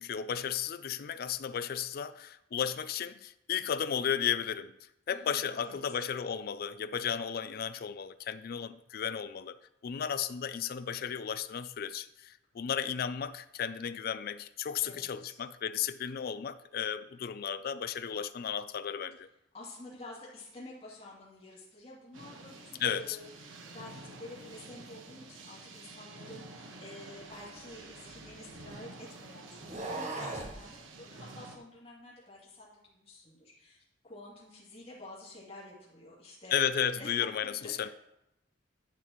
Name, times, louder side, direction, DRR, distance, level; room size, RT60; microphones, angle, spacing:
voice 1, 0.0-19.3 22.8-23.2 36.5-37.9, left 8 dB, 50° left, 0.4 m, -34 dB
voice 2, 5.1-6.0 14.8-15.4 19.5-36.6 37.0-37.1 37.6-37.9, left 1 dB, 30° left, 2.6 m, -50 dB
sound 1, 22.1-31.6, right 2 dB, 85° right, 1.3 m, -49 dB
sound 2, 27.3-28.8 29.5-30.6, right 2 dB, 40° right, 1.4 m, -40 dB
10.5 x 8.9 x 3.0 m
head